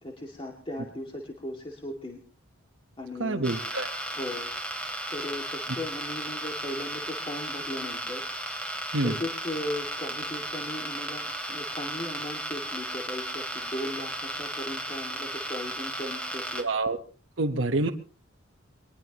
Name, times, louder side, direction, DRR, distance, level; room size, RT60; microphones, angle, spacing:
voice 1, 0.0-2.2 3.0-3.5 4.1-4.5 5.1-8.2 9.0-16.7 17.7-17.9, left 1 dB, 30° left, 0 dB, 2.3 m, -37 dB
voice 2, 3.2-3.9 8.9-9.2 16.6-17.0 17.4-17.9, right 2 dB, 65° right, 2 dB, 1.2 m, -27 dB
sound 1, 3.4-16.6, right 1 dB, 5° left, 3.1 m, -35 dB
22.5 x 20.5 x 3.0 m, 0.38 s
head